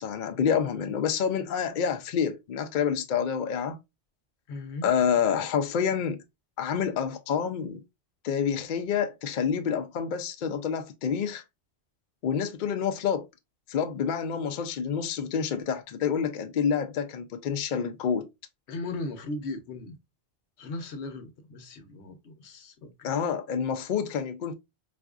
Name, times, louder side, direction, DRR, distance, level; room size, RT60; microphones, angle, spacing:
voice 1, 0.0-3.8 4.8-6.2 6.6-7.8 8.2-11.4 12.2-13.3 13.7-18.3 23.0-24.5, left 7 dB, 60° left, 0.5 m, -28 dB
voice 2, 4.5-4.9 18.7-20.0 20.6-23.2, left 2 dB, 75° left, 1.0 m, -37 dB
4.2 x 2.4 x 2.3 m
omnidirectional pair, 1.1 m